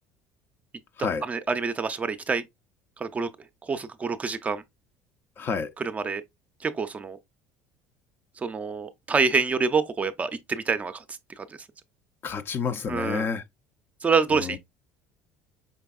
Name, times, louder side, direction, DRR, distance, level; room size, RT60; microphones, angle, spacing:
voice 1, 1.3-2.4 3.0-3.3 3.7-4.6 5.8-6.2 6.6-7.2 8.4-11.5 12.9-13.3 14.0-14.6, right 5 dB, 25° right, 0.5 m, -27 dB
voice 2, 5.4-5.7 12.2-13.4 14.3-14.6, left 5 dB, 40° left, 0.5 m, -29 dB
5.3 x 3.4 x 2.3 m
supercardioid pair, 105°, 6 cm